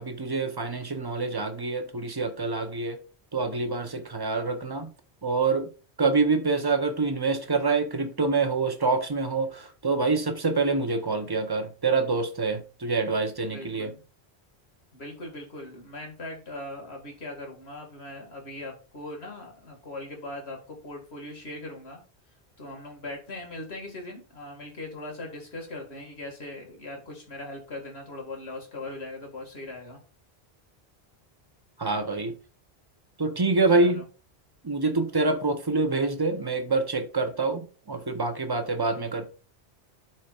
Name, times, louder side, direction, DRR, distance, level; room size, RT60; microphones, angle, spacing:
voice 1, 0.0-3.0 3.3-4.9 5.2-5.7 6.0-13.9 31.8-32.4 33.2-34.1 34.6-39.3, right 3 dB, 25° right, 0.8 m, -26 dB
voice 2, 3.7-4.0 13.5-14.0 14.9-22.0 22.6-30.0 33.7-34.0, left 2 dB, 75° left, 2.3 m, -40 dB
12.0 x 4.3 x 2.4 m
omnidirectional pair, 1.1 m